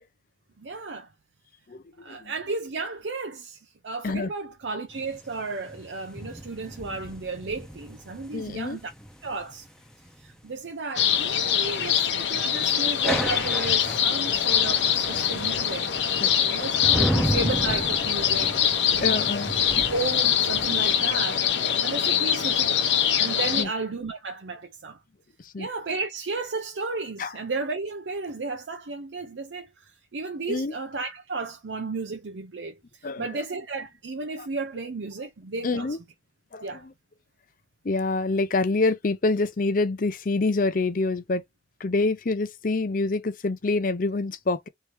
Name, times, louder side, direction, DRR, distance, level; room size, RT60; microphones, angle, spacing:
voice 1, 0.6-1.1 2.0-8.9 9.2-9.7 10.2-15.9 16.4-18.6 18.9-19.1 19.9-21.4 21.8-22.9 23.2-25.0 25.6-36.0 36.6-36.9, right 3 dB, 90° right, 0.7 m, -33 dB
voice 2, 1.7-2.3 4.0-4.3 8.3-8.8 16.2-16.3 18.9-19.8 21.6-21.8 23.6-23.7 25.4-25.7 27.2-27.3 30.5-30.7 33.0-33.2 35.6-36.0 36.5-36.8 37.8-41.4 41.8-44.7, left 3 dB, 50° left, 0.5 m, -26 dB
sound 1, 4.9-10.4 12.8-20.9, equal, 5° left, 0.8 m, -33 dB
sound 2, 10.9-23.6, left 9 dB, 90° left, 0.9 m, -24 dB
3.3 x 2.8 x 4.5 m
head